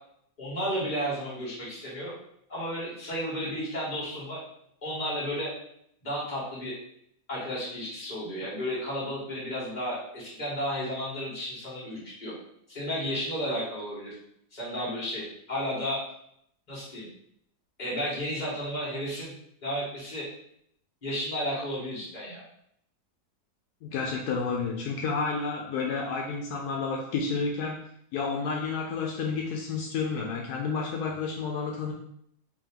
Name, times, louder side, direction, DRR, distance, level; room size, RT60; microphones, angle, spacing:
voice 1, 0.4-2.1 2.5-4.4 4.8-5.5 6.0-6.8 7.3-12.3 12.7-14.1 14.5-16.0 16.7-17.1 17.8-19.3 19.6-20.3 21.0-22.4, equal, 30° left, -8 dB, 1.8 m, -33 dB
voice 2, 23.8-27.8 28.1-31.9, left 4 dB, 80° left, 0 dB, 1.1 m, -30 dB
3.6 x 2.9 x 3.6 m, 0.71 s
omnidirectional pair, 1.7 m